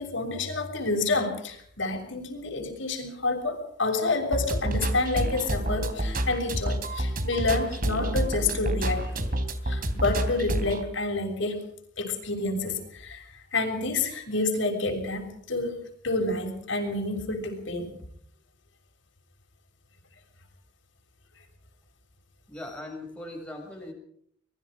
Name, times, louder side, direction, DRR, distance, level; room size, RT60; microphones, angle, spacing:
voice 1, 0.0-9.2 9.6-11.6 12.0-13.2 13.5-17.9 22.7-22.8, left 3 dB, 70° left, 3 dB, 6.6 m, -29 dB
sound 1, 4.3-10.8, right 1 dB, 45° right, 3.2 m, -28 dB
voice 2, 22.5-23.9, left 1 dB, 5° left, 0 dB, 6.8 m, -39 dB
25.5 x 22.0 x 5.1 m, 0.66 s
head